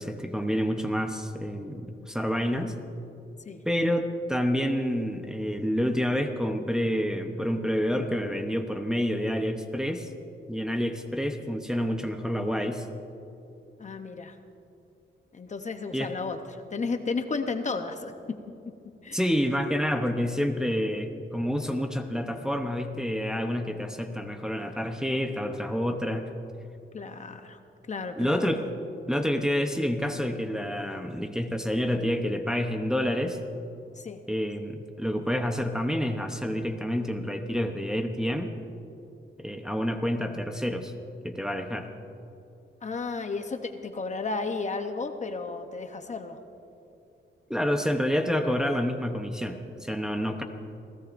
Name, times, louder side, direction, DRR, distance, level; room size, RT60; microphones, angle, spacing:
voice 1, 0.0-2.7 3.6-10.1 10.5-12.8 15.9-16.1 19.1-26.3 28.2-28.6 29.1-33.4 34.3-38.5 39.4-40.9 41.2-41.9 47.5-50.4, equal, 5° right, 4 dB, 0.8 m, -28 dB
voice 2, 13.8-14.4 15.3-18.1 19.0-19.2 26.9-27.6 27.9-28.4 34.0-34.2 42.8-46.4, left 4 dB, 35° left, 7 dB, 0.8 m, -33 dB
29.0 x 16.5 x 2.6 m, 2.7 s
wide cardioid pair, 140°, 21 cm